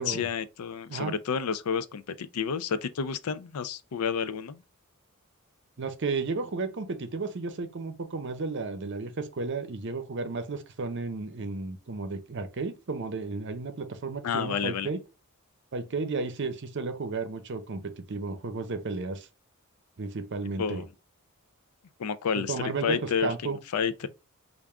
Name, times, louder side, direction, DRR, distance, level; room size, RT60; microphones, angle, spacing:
voice 1, 0.0-4.6 14.2-14.9 20.6-20.9 22.0-22.6 22.8-23.3 23.7-24.1, left 6 dB, 90° left, 0.4 m, -30 dB
voice 2, 5.8-15.0 15.7-19.3 20.0-20.8 22.4-23.6, right 3 dB, 55° right, 0.6 m, -33 dB
3.4 x 2.5 x 3.5 m
head